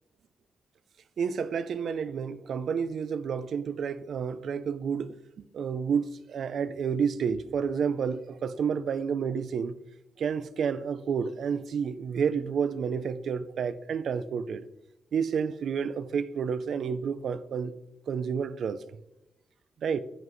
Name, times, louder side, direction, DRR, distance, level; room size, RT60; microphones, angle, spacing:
voice 1, 1.2-9.8 10.2-14.7 15.1-17.7 18.1-18.8 19.8-20.0, right 6 dB, 60° right, 0.5 m, -30 dB
10.0 x 9.7 x 3.1 m
wide cardioid pair, 160°, 0 cm